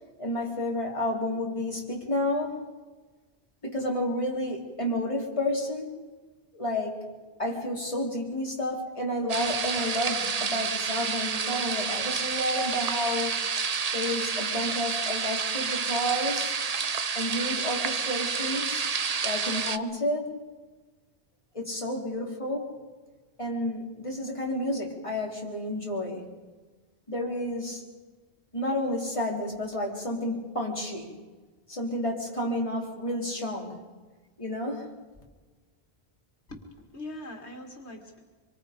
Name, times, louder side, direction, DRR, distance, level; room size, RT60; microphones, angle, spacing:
voice 1, 0.2-2.6 3.6-5.9 6.5-7.0 7.4-13.4 13.9-16.6 17.1-18.9 19.2-20.3 21.5-22.7 23.4-26.3 27.1-27.8 28.5-31.1 31.7-33.8 34.4-34.9, left 1 dB, 30° left, -2 dB, 3.6 m, -30 dB
sound 1, 9.3-19.8, right 5 dB, 40° right, 0.8 m, -29 dB
voice 2, 36.5-38.2, left 1 dB, 85° left, 2 dB, 2.4 m, -42 dB
25.5 x 23.5 x 5.2 m, 1.3 s
omnidirectional pair, 1.1 m